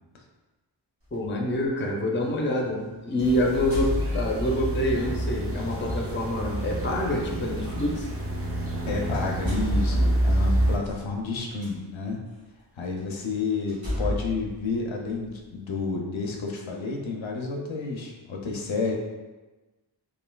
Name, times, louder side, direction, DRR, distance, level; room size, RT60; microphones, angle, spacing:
voice 1, 1.1-8.1, left 1 dB, 25° left, -1 dB, 0.5 m, -26 dB
sound 1, 1.1-1.3 3.2-4.7 5.6-5.8 7.6-7.7 8.7-8.8 9.1-11.7 12.4-12.5 13.0-13.1 13.7-15.5, left 1 dB, 70° right, 1.2 m, -34 dB
sound 2, 3.2-10.8, right 1 dB, 30° right, 0.4 m, -28 dB
voice 2, 8.9-12.2 12.8-18.9, left 4 dB, 75° left, 1 dB, 0.5 m, -30 dB
3.1 x 2.4 x 2.2 m, 1.2 s
wide cardioid pair, 50°, 47 cm